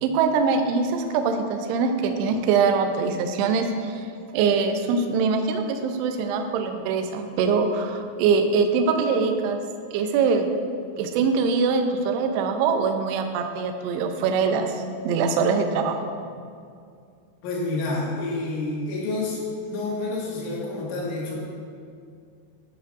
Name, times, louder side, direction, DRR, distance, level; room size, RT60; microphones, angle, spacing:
voice 1, 0.0-4.1 4.3-9.6 9.9-10.5 11.0-16.0, right 5 dB, 90° right, 5 dB, 2.3 m, -23 dB
voice 2, 17.4-21.4, left 2 dB, 80° left, -5 dB, 4.3 m, -29 dB
11.0 x 9.8 x 2.6 m, 2.4 s
omnidirectional pair, 5.7 m